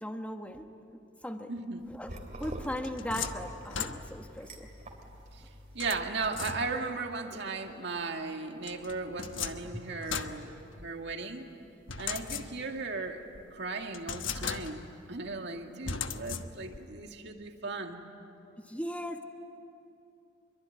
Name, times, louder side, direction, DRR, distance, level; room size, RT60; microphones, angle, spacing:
voice 1, 0.0-0.6 1.2-1.5 1.9-2.1 2.4-4.7 7.3-7.4 18.6-19.2, equal, 5° left, 5 dB, 1.4 m, -38 dB
voice 2, 1.5-1.9 5.3-5.4 5.7-11.4 12.0-13.2 13.5-18.0, right 3 dB, 60° right, 3 dB, 2.2 m, -36 dB
sound 1, 2.0-6.0, right 1 dB, 40° right, 3.0 m, -46 dB
sound 2, 2.4-4.4 5.8-7.0 8.6-11.1 11.9-12.9 13.3-13.4 13.9-15.0 15.9-16.9, left 6 dB, 75° left, 1.2 m, -38 dB
27.0 x 23.0 x 9.4 m, 2.7 s
head